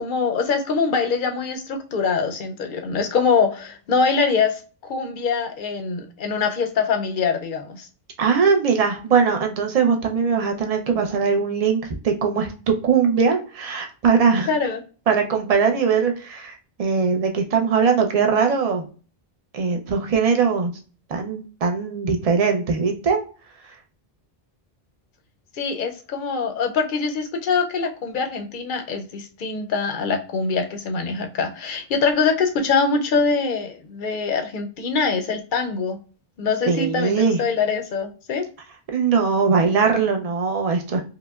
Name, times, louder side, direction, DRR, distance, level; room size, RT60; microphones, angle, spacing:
voice 1, 0.0-7.9 14.5-14.8 25.5-36.0 36.4-38.5, left 5 dB, 60° left, 6 dB, 0.7 m, -23 dB
voice 2, 8.2-14.5 15.1-18.8 19.5-20.7 21.1-23.2 36.7-37.4 38.9-41.0, right 5 dB, 45° right, 3 dB, 0.5 m, -20 dB
4.8 x 2.1 x 2.3 m, 0.38 s
omnidirectional pair, 1.0 m